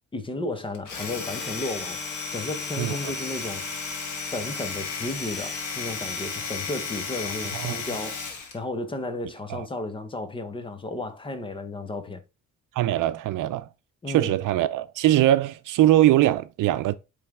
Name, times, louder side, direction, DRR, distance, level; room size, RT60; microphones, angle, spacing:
voice 1, 0.1-3.7 4.3-8.2 8.5-12.2 14.0-14.4, left 2 dB, 15° left, 0.8 m, -33 dB
Domestic sounds home sounds, 0.7-8.6, left 5 dB, 70° left, 1.6 m, -33 dB
voice 2, 12.8-13.7 14.1-16.9, right 14 dB, 90° right, 0.6 m, -21 dB
8.5 x 3.5 x 3.5 m
cardioid pair, 180°, 30 cm